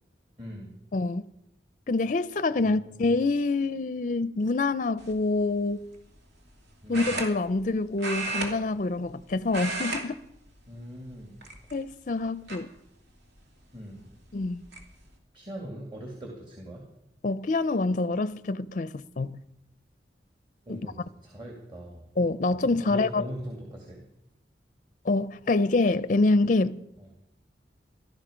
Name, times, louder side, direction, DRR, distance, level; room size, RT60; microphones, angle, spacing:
voice 1, 0.4-0.7 2.6-2.9 6.8-7.0 10.7-11.4 13.7-14.0 15.3-16.8 20.7-22.0 22.5-24.0, equal, 30° right, 2.4 m, -41 dB
voice 2, 0.9-1.2 1.9-5.8 6.9-10.2 11.7-12.7 14.3-14.6 17.2-19.4 20.7-20.8 22.2-23.3 25.0-26.8, left 3 dB, 45° left, 0.5 m, -26 dB
sound 1, 5.0-5.3 6.9-7.7 8.0-9.2 9.5-10.0 10.3-10.6 11.4-11.9 12.5-12.6 14.0-14.1 14.4-14.8, right 2 dB, 75° right, 2.7 m, -33 dB
17.5 x 12.5 x 5.1 m
head